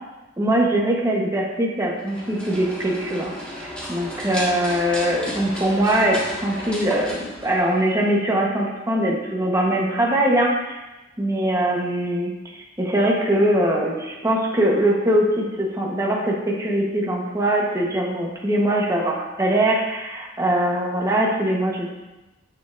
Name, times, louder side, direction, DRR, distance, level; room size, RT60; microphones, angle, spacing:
voice 1, 0.4-3.3 3.6-10.8 11.2-12.3 12.8-21.9, right 1 dB, 15° right, -2 dB, 1.0 m, -22 dB
sound 1, 2.0-8.1, equal, 5° left, 1.6 m, -34 dB
9.1 x 6.7 x 2.5 m, 1.1 s
head